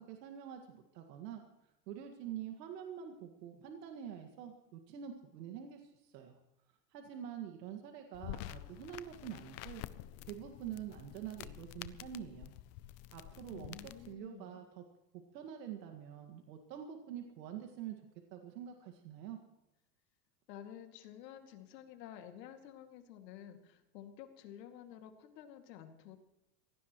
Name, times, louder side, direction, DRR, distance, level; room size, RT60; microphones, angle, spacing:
voice 1, 0.0-6.4 6.9-9.8 10.3-12.5 13.1-14.8 15.1-18.0 18.3-19.4, right 9 dB, 90° right, 4 dB, 2.0 m, -46 dB
sound 1, 8.1-14.1, left 15 dB, 35° left, 0.5 m, -49 dB
voice 2, 13.5-14.6 20.5-26.2, left 10 dB, 85° left, 5 dB, 2.5 m, -51 dB
24.5 x 17.5 x 3.1 m, 0.89 s
supercardioid pair, 145°, 48 cm